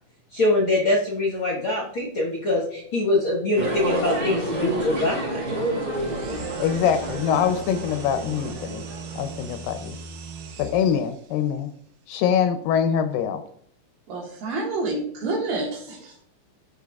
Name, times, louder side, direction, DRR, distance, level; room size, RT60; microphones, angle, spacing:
voice 1, 0.3-5.4, left 2 dB, 60° left, -4 dB, 1.3 m, -23 dB
sound 1, 3.6-9.6, right 2 dB, 55° right, 3.7 m, -29 dB
sound 2, 5.9-11.2, right 4 dB, 90° right, 2.8 m, -39 dB
voice 2, 6.6-8.8 9.2-10.0 10.6-11.7 12.1-13.4, left 8 dB, 80° left, 9 dB, 2.2 m, -24 dB
voice 3, 14.1-16.3, right 2 dB, 75° right, -1 dB, 3.3 m, -28 dB
13.0 x 4.4 x 2.3 m, 0.62 s
omnidirectional pair, 4.2 m